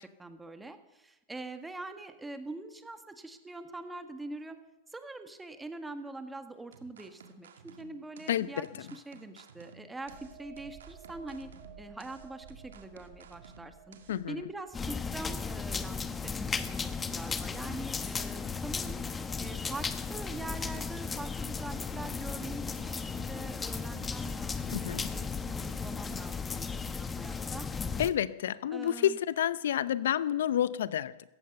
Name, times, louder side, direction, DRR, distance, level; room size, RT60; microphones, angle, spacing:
voice 1, 0.0-4.6 4.9-11.5 11.8-14.0 14.3-19.0 19.4-27.7 28.7-29.2, right 2 dB, 10° right, 7 dB, 1.7 m, -44 dB
sound 1, 6.7-14.2, right 5 dB, 75° right, 1.8 m, -55 dB
voice 2, 8.3-8.7 14.1-14.4 24.7-25.1 28.0-31.3, left 10 dB, 70° left, 17 dB, 0.7 m, -29 dB
sound 2, 10.0-17.5 17.8-18.0, right 7 dB, 55° right, 7.8 m, -54 dB
sound 3, 14.7-28.1, left 5 dB, 15° left, 1.0 m, -35 dB
16.5 x 14.5 x 5.5 m, 1.0 s
hypercardioid pair, 105°, 0 cm